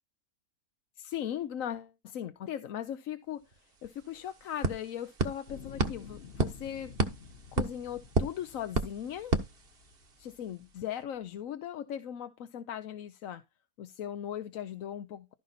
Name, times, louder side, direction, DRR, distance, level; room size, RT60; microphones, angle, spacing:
voice 1, 0.9-6.9 7.5-9.4 10.2-13.4 13.8-15.3, left 10 dB, 70° left, 1.1 m, -38 dB
sound 1, 3.5-3.6 3.8-10.3, right 3 dB, 45° right, 1.4 m, -33 dB
sound 2, 5.5-10.7 11.4-11.5, left 5 dB, 50° left, 1.2 m, -51 dB
14.0 x 5.5 x 4.2 m
omnidirectional pair, 1.5 m